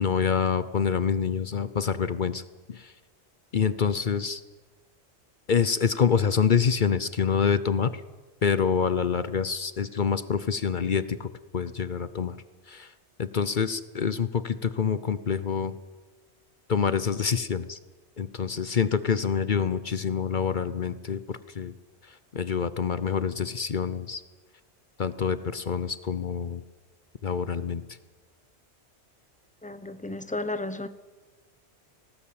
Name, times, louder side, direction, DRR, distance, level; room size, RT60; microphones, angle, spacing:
voice 1, 0.0-2.4 3.5-4.4 5.5-7.9 8.4-11.0 11.5-12.3 13.3-15.7 16.7-17.8 18.2-21.2 21.6-21.7 22.4-24.2 25.0-26.6 27.2-27.8, left 6 dB, 50° left, 14 dB, 0.9 m, -26 dB
voice 2, 29.6-30.9, left 2 dB, 5° left, 11 dB, 0.9 m, -33 dB
20.0 x 17.5 x 8.7 m, 1.3 s
omnidirectional pair, 1.1 m